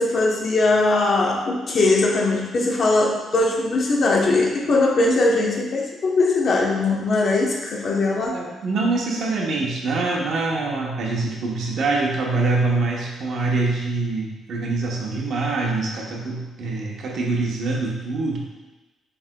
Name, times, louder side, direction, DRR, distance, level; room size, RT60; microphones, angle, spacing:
voice 1, 0.0-8.4, left 2 dB, 55° left, -1 dB, 0.8 m, -20 dB
voice 2, 8.3-18.4, right 3 dB, 65° right, -1 dB, 0.9 m, -24 dB
6.0 x 3.4 x 2.2 m, 1.2 s
cardioid pair, 90°, 0 cm